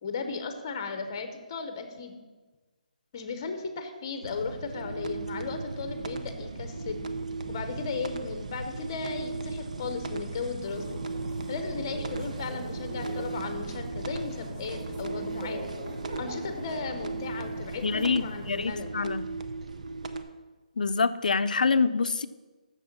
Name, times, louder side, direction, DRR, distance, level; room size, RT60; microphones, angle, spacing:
voice 1, 0.0-2.1 3.1-7.0 7.5-10.8 11.5-15.6 16.2-19.0, left 4 dB, 25° left, 7 dB, 0.8 m, -36 dB
sound 1, 4.2-20.2, right 3 dB, 55° right, 0.8 m, -37 dB
sound 2, 10.6-18.6, right 1 dB, 20° right, 0.9 m, -42 dB
voice 2, 17.8-19.2 20.8-22.3, left 4 dB, 75° left, 12 dB, 0.5 m, -26 dB
6.8 x 6.2 x 7.3 m, 1.3 s
hypercardioid pair, 175°, 4 cm